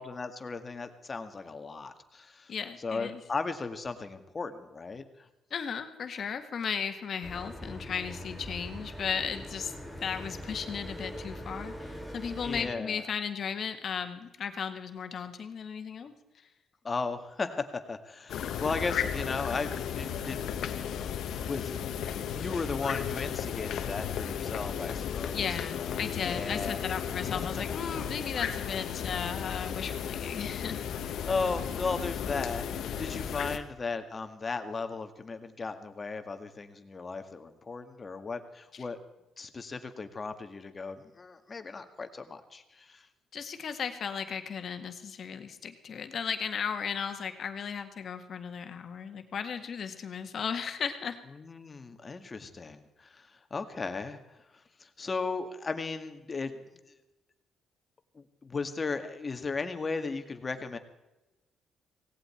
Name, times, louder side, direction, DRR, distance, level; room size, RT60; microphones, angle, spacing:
voice 1, 0.0-2.5 2.8-5.3 12.4-13.0 16.8-20.6 20.9-21.1 21.4-21.7 22.3-26.8 27.3-27.6 31.3-39.0 39.4-43.1 51.4-54.2 54.8-56.6 58.2-60.8, left 4 dB, 30° left, 8 dB, 1.8 m, -36 dB
voice 2, 2.5-3.2 5.5-9.7 10.0-16.1 25.3-30.8 43.3-51.2, left 7 dB, 55° left, 7 dB, 1.8 m, -35 dB
sound 1, 7.2-12.7, equal, ahead, 6.9 m, -42 dB
sound 2, 18.3-33.6, left 8 dB, 75° left, 1.3 m, -34 dB
18.0 x 17.0 x 4.5 m, 1.0 s
cardioid pair, 90°, 0 cm